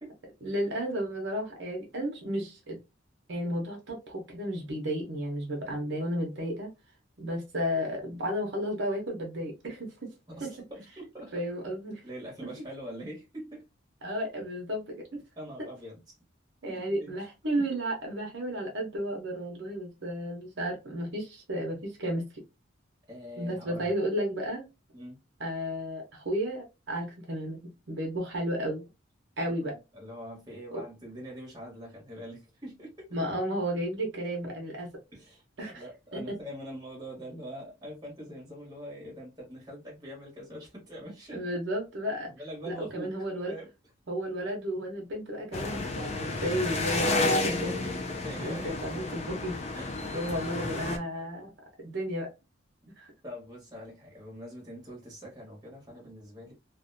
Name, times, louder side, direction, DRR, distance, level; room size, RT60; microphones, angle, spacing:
voice 1, 0.4-2.8 3.3-6.7 7.2-10.1 10.4-10.5 11.3-12.0 14.0-15.2 16.6-22.2 23.4-24.6 25.4-28.8 29.4-29.7 30.7-30.8 33.1-34.9 35.6-35.8 36.1-36.3 41.3-42.3 42.7-43.5 44.1-47.9 48.4-49.6 50.0-51.5 51.8-52.3 53.0-53.1, equal, 65° right, 0.8 m, -33 dB
voice 2, 10.3-11.4 12.0-13.6 15.4-16.0 16.7-17.1 17.6-17.7 23.1-23.9 24.9-25.2 29.5-33.1 35.1-35.4 35.7-41.4 42.3-43.1 43.5-43.7 44.2-44.4 46.4-47.0 48.2-49.0 49.7-50.0 53.2-56.5, equal, 20° right, 1.1 m, -43 dB
sound 1, 45.5-51.0, left 2 dB, 30° left, 0.4 m, -31 dB
2.6 x 2.2 x 2.5 m
head